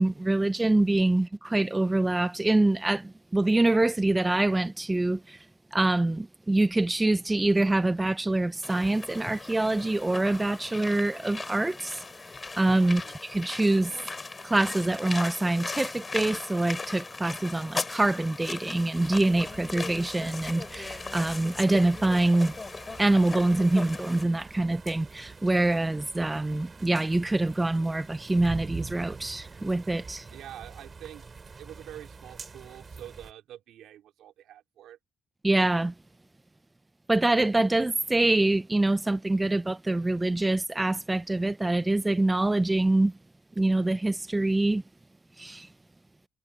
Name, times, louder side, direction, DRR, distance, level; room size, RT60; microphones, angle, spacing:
voice 1, 0.0-5.4 5.7-12.0 12.6-14.0 14.4-22.5 23.0-30.3 35.4-35.9 37.1-43.1 43.6-44.8 45.4-45.7, right 2 dB, 15° right, 0.5 m, -25 dB
sound 1, 8.6-24.2, left 3 dB, 25° left, 6.2 m, -38 dB
sound 2, 18.9-33.3, right 4 dB, 35° right, 5.0 m, -45 dB
voice 2, 30.3-31.2 31.6-35.0, right 12 dB, 80° right, 3.7 m, -46 dB
cardioid pair, 90°, 0 cm